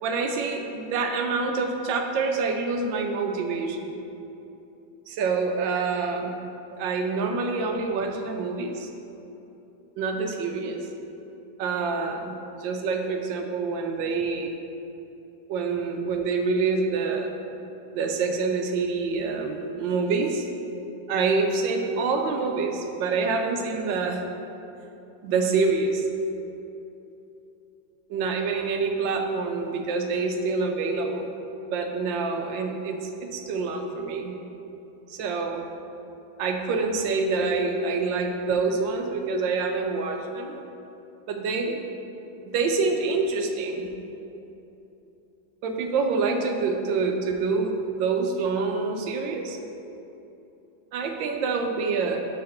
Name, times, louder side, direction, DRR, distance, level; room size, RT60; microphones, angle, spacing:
voice 1, 0.0-4.0 5.1-6.3 6.7-8.9 10.0-10.9 11.6-12.3 12.6-14.5 15.5-17.3 17.9-20.5 21.1-24.2 25.2-26.0 28.1-31.3 31.7-34.3 35.1-35.6 36.4-40.5 41.3-41.8 42.4-43.9 45.6-49.6 50.9-52.2, right 4 dB, 80° right, 4 dB, 1.3 m, -26 dB
5.8 x 3.8 x 5.6 m, 2.9 s
omnidirectional pair, 2.1 m